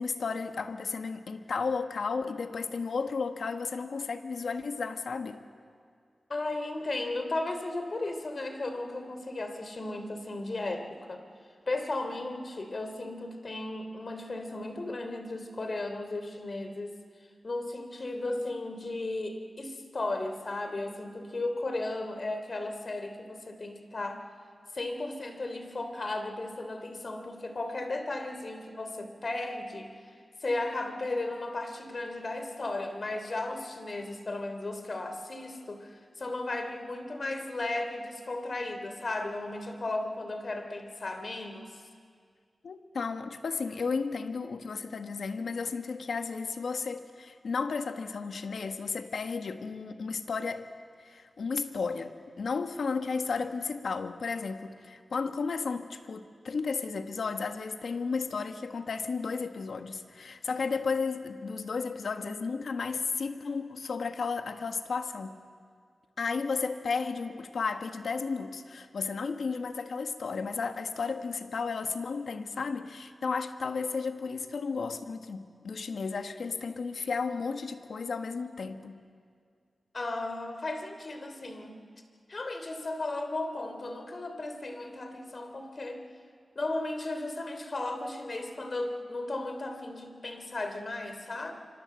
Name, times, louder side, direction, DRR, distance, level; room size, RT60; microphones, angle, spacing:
voice 1, 0.0-5.4 42.6-50.7 51.0-65.4 66.2-79.0, left 4 dB, 80° left, 7 dB, 1.5 m, -33 dB
voice 2, 6.3-11.2 11.7-17.0 17.4-24.2 24.7-29.9 30.4-41.8 79.9-81.8 82.3-86.0 86.5-91.5, left 2 dB, 50° left, 7 dB, 3.2 m, -35 dB
26.5 x 25.5 x 7.9 m, 2.1 s
cardioid pair, 55°, 0 cm